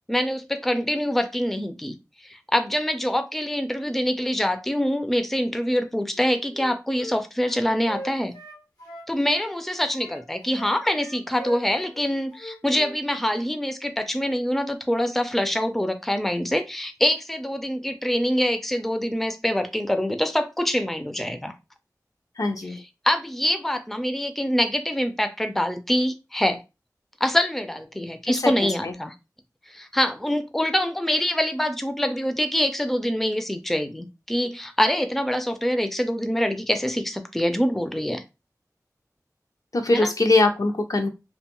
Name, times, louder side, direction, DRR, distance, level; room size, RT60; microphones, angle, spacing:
voice 1, 0.1-8.3 9.1-21.5 23.0-26.6 27.2-29.1 29.7-38.2 39.9-40.1, equal, 5° left, 7 dB, 0.4 m, -25 dB
Wind instrument woodwind instrument, 6.1-9.6 9.9-13.0 13.3-13.5, equal, 75° left, 0.9 m, -41 dB
voice 2, 22.4-22.8 28.3-28.9 39.7-41.1, left 2 dB, 60° left, 6 dB, 0.5 m, -22 dB
2.5 x 2.2 x 2.9 m, 0.26 s
wide cardioid pair, 60°, 7 cm